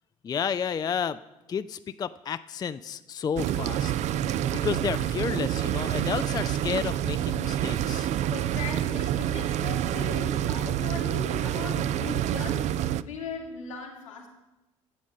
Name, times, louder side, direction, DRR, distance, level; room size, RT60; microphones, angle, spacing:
voice 1, 0.2-1.2 1.5-3.9 4.4-8.1, left 7 dB, 25° left, 14 dB, 0.4 m, -31 dB
sound 1, 3.4-13.0, right 11 dB, 45° right, 0.4 m, -28 dB
voice 2, 8.3-12.7 13.0-14.3, left 6 dB, 75° left, -1 dB, 2.0 m, -39 dB
10.0 x 8.4 x 6.5 m, 1.0 s
figure-of-eight pair, 50°, 17 cm